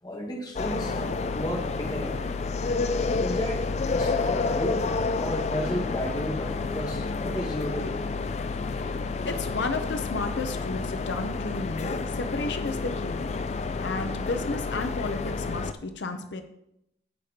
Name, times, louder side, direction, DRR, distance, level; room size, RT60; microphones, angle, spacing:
voice 1, 0.0-2.4 3.2-3.6 3.9-4.9 5.1-8.0, equal, 20° left, 1.2 m, -33 dB
sound 1, 0.6-15.7, left 4 dB, 35° left, 0.4 m, -29 dB
voice 2, 9.2-13.3 13.8-16.4, left 3 dB, 80° left, 0.7 m, -32 dB
15.0 x 5.1 x 2.9 m
head